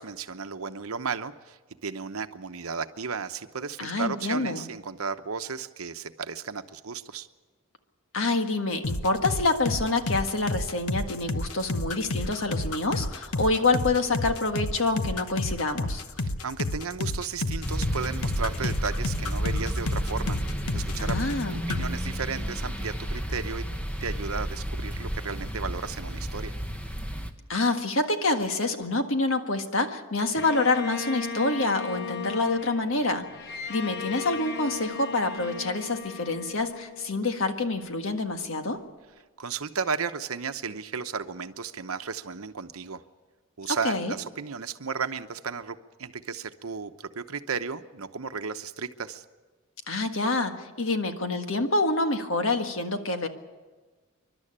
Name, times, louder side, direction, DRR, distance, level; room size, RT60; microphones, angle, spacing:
voice 1, 0.0-7.3 16.2-20.4 20.7-21.2 21.7-23.6 24.0-26.6 39.4-43.0 43.6-49.2, right 5 dB, 80° right, 10 dB, 0.9 m, -34 dB
voice 2, 3.8-4.7 8.1-16.0 21.0-21.6 27.5-33.2 33.7-38.8 43.7-44.1 49.9-53.3, left 2 dB, 65° left, 6 dB, 1.7 m, -27 dB
sound 1, 8.8-21.4 21.7-21.9, left 2 dB, 90° left, 1.1 m, -30 dB
sound 2, 17.6-27.3, equal, 5° left, 1.0 m, -32 dB
Bowed string instrument, 30.4-37.6, left 5 dB, 50° left, 1.1 m, -37 dB
28.0 x 12.0 x 8.8 m, 1.3 s
head